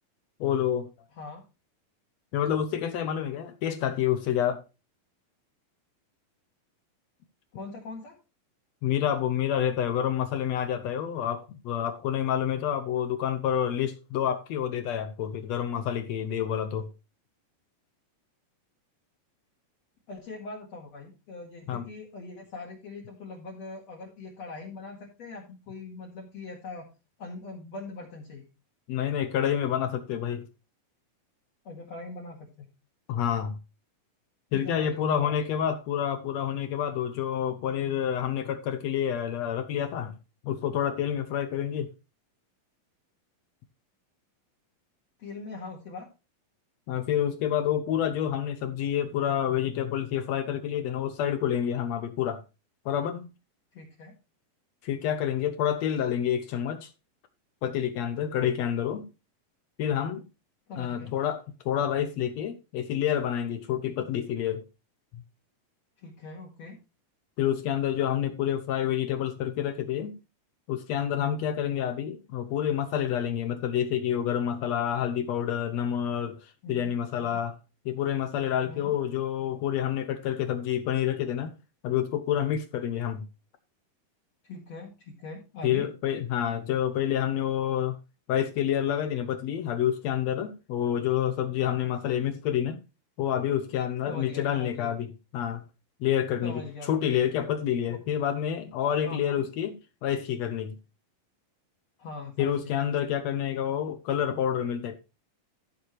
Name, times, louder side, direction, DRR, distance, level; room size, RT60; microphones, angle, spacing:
voice 1, 0.4-0.9 2.3-4.6 8.8-16.9 21.7-21.8 28.9-30.4 33.1-33.6 34.5-40.1 40.4-41.9 46.9-52.4 52.8-53.3 54.8-56.9 57.6-59.1 59.8-60.2 60.8-64.7 67.4-70.1 70.7-77.6 77.8-81.5 81.8-83.3 85.6-88.0 88.3-92.8 93.2-95.6 96.0-99.8 100.0-100.8 102.4-105.0, left 9 dB, 75° left, 1.5 m, -28 dB
voice 2, 1.1-1.4 7.5-8.2 20.1-26.9 27.2-28.5 31.6-32.7 34.5-35.6 45.2-46.1 53.7-54.1 60.7-61.1 66.0-66.8 76.6-77.4 78.7-78.9 84.4-85.9 94.1-94.9 96.4-97.0 99.0-99.4 102.0-102.8, left 3 dB, 55° left, 2.8 m, -42 dB
14.5 x 7.1 x 3.1 m
omnidirectional pair, 4.1 m